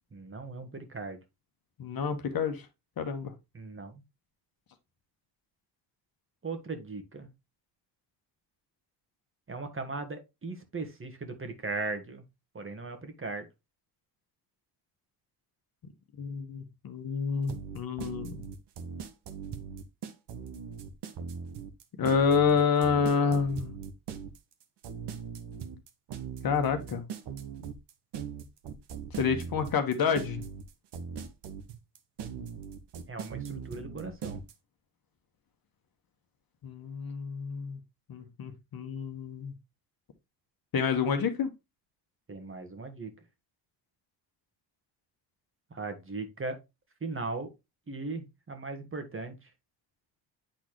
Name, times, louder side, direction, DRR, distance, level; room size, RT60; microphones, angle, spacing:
voice 1, 0.1-1.2 3.5-4.0 6.4-7.3 9.5-12.2 12.5-13.5 33.1-34.4 42.3-43.1 45.7-46.6 47.0-47.5 47.9-49.5, right 3 dB, 25° right, 1.6 m, -38 dB
voice 2, 1.8-2.7 3.0-3.3 16.2-18.4 22.0-23.8 26.4-27.1 29.1-30.4 36.6-37.8 38.1-39.5 40.7-41.5, left 6 dB, 45° left, 1.3 m, -28 dB
sound 1, 17.5-34.5, right 6 dB, 60° right, 1.2 m, -40 dB
9.0 x 4.0 x 3.1 m
supercardioid pair, 65°, 48 cm